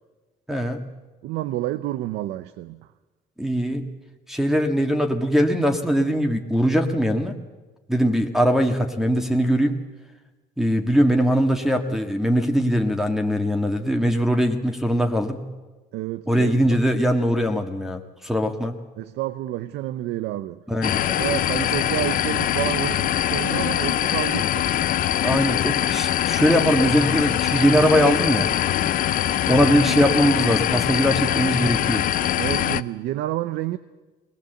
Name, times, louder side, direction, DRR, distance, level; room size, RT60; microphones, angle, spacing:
voice 1, 0.5-0.8 3.4-3.8 4.3-7.3 7.9-9.7 10.6-15.4 16.3-18.7 20.7-21.0 21.5-21.7 25.2-28.5 29.5-32.1, equal, ahead, 1.7 m, -21 dB
voice 2, 1.2-2.9 15.9-16.8 19.0-20.6 21.1-24.7 32.4-33.8, right 14 dB, 85° right, 0.7 m, -29 dB
sound 1, 20.8-32.8, left 11 dB, 55° left, 0.6 m, -23 dB
22.0 x 19.0 x 7.9 m
cardioid pair, 110°, 17 cm